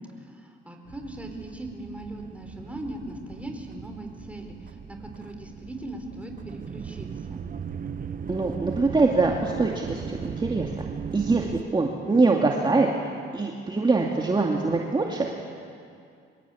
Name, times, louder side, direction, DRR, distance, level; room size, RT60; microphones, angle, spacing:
voice 1, 0.3-7.4, right 1 dB, 5° right, 3 dB, 4.5 m, -39 dB
sound 1, 0.9-11.6, right 7 dB, 45° right, 1.2 m, -38 dB
voice 2, 8.3-10.9 11.1-15.4, right 3 dB, 25° right, 0 dB, 2.4 m, -24 dB
25.5 x 21.5 x 8.6 m, 2.3 s
cardioid pair, 90°, 20 cm